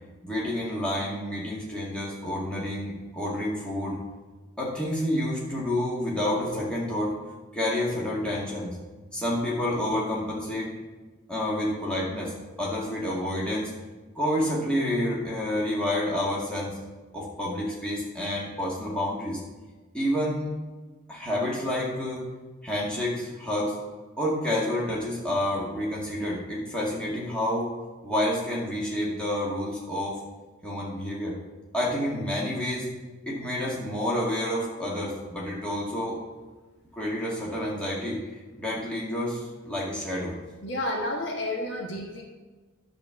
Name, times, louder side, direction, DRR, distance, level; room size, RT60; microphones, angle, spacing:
voice 1, 0.2-4.0 4.6-7.2 7.5-8.8 9.1-10.7 11.3-13.7 14.2-16.8 17.1-19.4 19.9-20.5 21.1-22.3 22.6-23.7 24.2-27.7 28.0-30.2 30.6-31.4 31.7-32.9 33.3-36.2 36.9-38.2 38.6-40.4, left 1 dB, 5° left, -6 dB, 2.0 m, -29 dB
voice 2, 40.6-42.2, left 1 dB, 55° left, 0 dB, 1.4 m, -30 dB
10.5 x 4.3 x 7.1 m, 1.3 s
head